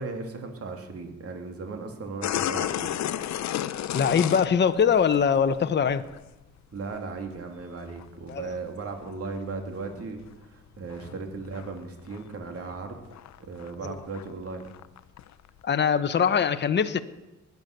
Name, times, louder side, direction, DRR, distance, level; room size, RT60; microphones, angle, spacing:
voice 1, 0.0-3.0 6.7-10.2 10.5-13.0 13.5-14.7, right 4 dB, 50° right, 4 dB, 2.8 m, -36 dB
sound 1, 2.2-5.6 5.9-6.2 6.6-8.5 9.1-10.0 10.3-11.8 12.0-12.3 12.6-15.6, left 11 dB, 65° left, 0.7 m, -33 dB
voice 2, 3.9-6.0 8.3-8.5 13.8-14.0 15.6-17.0, left 7 dB, 35° left, 10 dB, 0.9 m, -22 dB
20.5 x 9.5 x 6.7 m, 1.0 s
cardioid pair, 90°, 30 cm